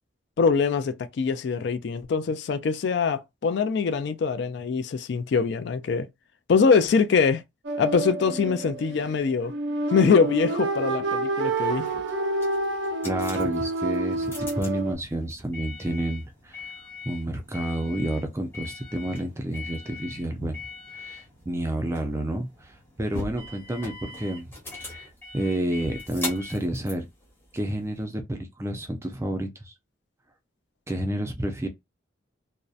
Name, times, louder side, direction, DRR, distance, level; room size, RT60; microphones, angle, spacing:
voice 1, 0.4-6.1 6.5-7.4 7.8-9.5 9.9-11.9, left 5 dB, 60° left, 0.3 m, -23 dB
sound 1, 7.6-14.9, right 2 dB, 65° right, 0.6 m, -28 dB
sound 2, 11.6-28.0, left 3 dB, 10° left, 0.8 m, -41 dB
voice 2, 13.0-16.7 17.0-20.6 20.9-24.5 24.8-27.1 27.5-29.7 30.9-31.7, right 1 dB, 15° right, 0.4 m, -30 dB
2.6 x 2.0 x 2.3 m
head